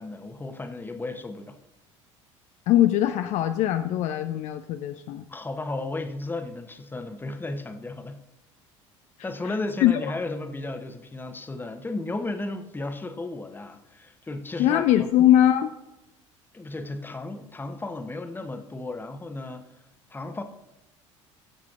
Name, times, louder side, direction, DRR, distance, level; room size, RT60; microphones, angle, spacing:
voice 1, 0.0-1.6 5.3-8.2 9.2-15.1 16.5-19.7 20.1-20.4, left 2 dB, 10° left, 0.9 m, -34 dB
voice 2, 2.7-5.2 9.4-9.5 9.8-10.1 14.6-15.7, left 12 dB, 45° left, 0.5 m, -21 dB
18.0 x 7.3 x 2.5 m
figure-of-eight pair, 60°, 16 cm